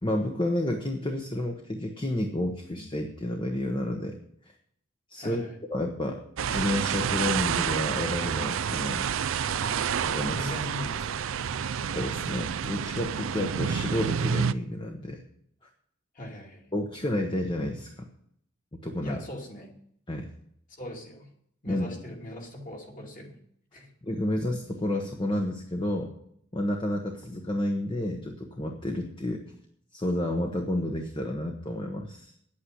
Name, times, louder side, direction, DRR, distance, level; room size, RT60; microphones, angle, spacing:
voice 1, 0.0-4.2 5.1-5.4 5.7-6.2 6.5-9.1 10.0-10.5 11.9-15.2 16.7-18.0 18.8-19.2 20.1-20.3 21.7-22.0 24.0-26.1 26.5-29.4 29.9-32.3, left 1 dB, 25° left, 3 dB, 1.0 m, -30 dB
voice 2, 5.2-5.6 9.5-11.9 16.1-16.7 19.0-19.8 20.7-21.3 21.6-23.4 23.7-23.9, left 1 dB, 40° left, 0 dB, 2.5 m, -41 dB
sound 1, 6.4-14.5, right 7 dB, 75° right, 0.4 m, -29 dB
9.8 x 8.8 x 7.9 m, 0.69 s
head